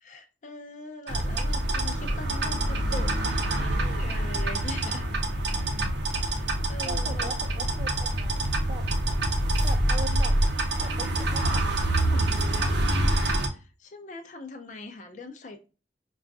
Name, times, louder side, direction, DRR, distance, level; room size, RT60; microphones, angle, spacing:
voice 1, 0.0-5.1 6.1-7.7 13.3-15.7, left 2 dB, 40° left, 7 dB, 0.4 m, -42 dB
sound 1, 1.1-13.5, right 1 dB, 70° right, 0.5 m, -26 dB
voice 2, 6.8-8.9 9.6-10.4 10.8-11.6 12.1-12.6, right 2 dB, 30° right, 4 dB, 0.5 m, -40 dB
4.8 x 2.3 x 2.5 m, 0.34 s
head